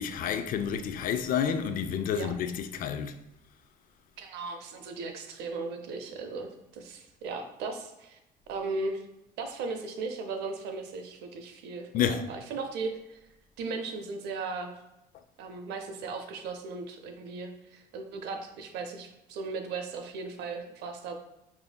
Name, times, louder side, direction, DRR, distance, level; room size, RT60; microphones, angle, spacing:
voice 1, 0.0-3.2 11.9-12.2, left 8 dB, 55° left, 0.4 m, -29 dB
voice 2, 4.2-8.2 8.5-9.0 9.4-13.2 13.6-14.8 15.4-21.1, right 4 dB, 85° right, 0.6 m, -37 dB
5.5 x 2.6 x 2.2 m
cardioid pair, 110°, 17 cm